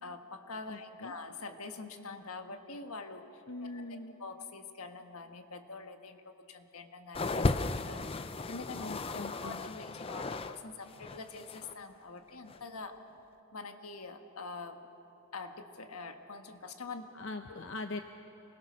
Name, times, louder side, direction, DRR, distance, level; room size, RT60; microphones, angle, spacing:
voice 1, 0.0-13.0 13.5-14.9 15.3-17.1 17.5-17.6, left 3 dB, 80° left, 6 dB, 1.5 m, -45 dB
voice 2, 0.7-1.1 3.5-4.2 8.8-9.6 17.1-18.0, left 2 dB, 55° left, 6 dB, 0.7 m, -41 dB
sound 1, 7.1-10.6 10.8-11.7 12.5-12.6, left 3 dB, 25° left, 0.5 m, -35 dB
27.0 x 20.5 x 6.3 m, 2.8 s
head